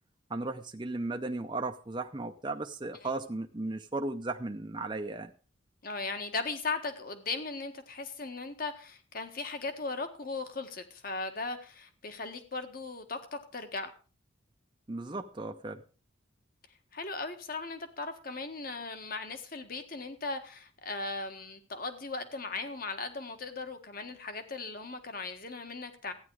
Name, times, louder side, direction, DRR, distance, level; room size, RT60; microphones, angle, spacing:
voice 1, 0.3-5.3 14.9-15.8, right 2 dB, 25° right, 4 dB, 0.7 m, -36 dB
voice 2, 5.8-13.9 16.9-26.1, left 3 dB, 45° left, 8 dB, 1.7 m, -38 dB
14.5 x 10.0 x 4.8 m, 0.37 s
head